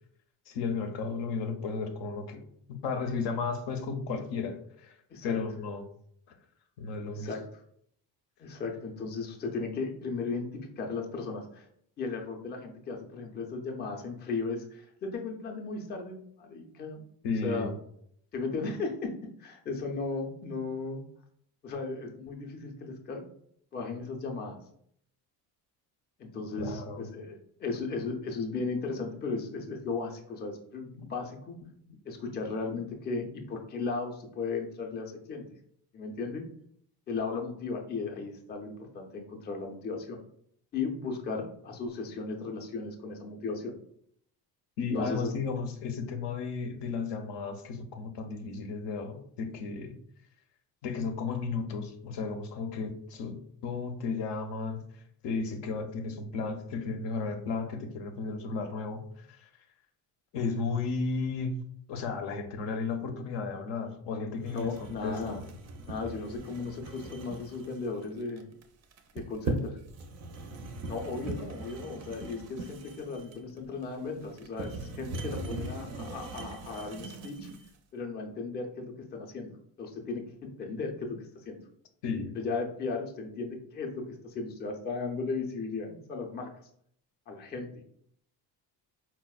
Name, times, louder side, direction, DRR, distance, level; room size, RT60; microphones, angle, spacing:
voice 1, 0.5-5.0 5.2-5.9 6.8-7.3 17.2-17.8 26.6-27.1 31.0-31.1 44.8-50.0 50.8-59.5 60.3-61.5 61.9-65.4 82.0-82.4, left 4 dB, 75° left, 6 dB, 0.6 m, -34 dB
voice 2, 8.4-11.7 12.0-17.0 17.4-17.7 18.3-19.1 19.4-21.0 21.6-23.2 23.7-24.6 26.2-31.6 32.1-35.4 35.9-36.4 37.1-40.2 40.7-43.7 44.9-45.3 64.5-65.4 65.9-68.4 69.1-69.8 70.9-77.5 77.9-81.6 82.3-86.5 87.3-87.8, left 4 dB, 25° left, 3 dB, 0.4 m, -36 dB
sound 1, 64.4-77.8, right 2 dB, 40° right, 0.4 m, -40 dB
4.2 x 2.0 x 2.3 m, 0.67 s
cardioid pair, 120°, 42 cm